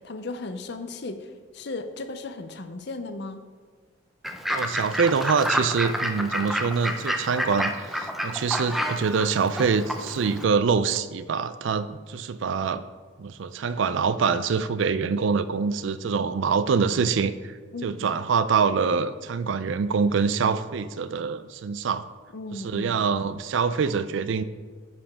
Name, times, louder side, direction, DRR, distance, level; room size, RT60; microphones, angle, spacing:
voice 1, 0.0-3.4 17.7-18.1 22.3-23.0, left 2 dB, 55° left, 8 dB, 0.6 m, -36 dB
Fowl / Bird, 4.2-10.4, equal, ahead, 0.4 m, -29 dB
voice 2, 4.5-12.8 13.2-17.6 17.8-22.1 22.5-24.4, right 5 dB, 65° right, 14 dB, 0.4 m, -25 dB
10.5 x 5.1 x 3.6 m, 1.5 s
head